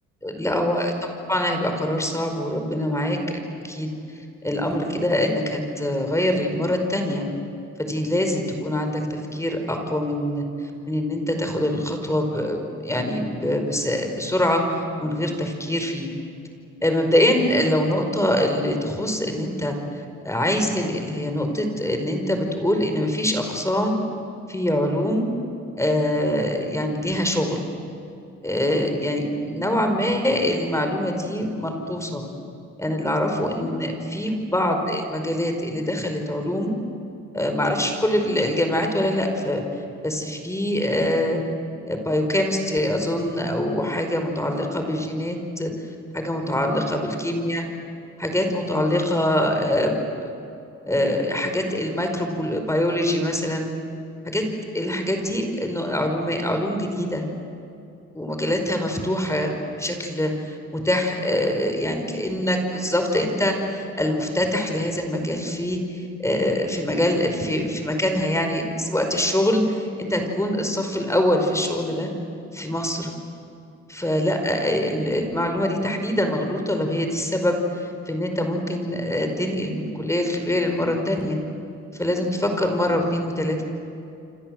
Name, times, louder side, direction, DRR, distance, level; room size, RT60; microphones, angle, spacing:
voice 1, 0.2-0.9 1.3-3.4 3.6-7.3 7.8-16.1 16.8-19.8 20.2-24.0 24.5-25.3 25.8-27.6 28.4-32.3 32.8-36.7 37.3-39.6 40.0-41.4 41.9-45.7 46.2-47.6 48.2-50.3 50.9-53.7 54.2-54.4 54.7-57.3 58.1-72.1 72.5-73.1 73.9-81.4 81.9-83.6, left 1 dB, 10° left, 4 dB, 5.0 m, -24 dB
28.5 x 26.5 x 7.9 m, 2.7 s
cardioid pair, 90°, 30 cm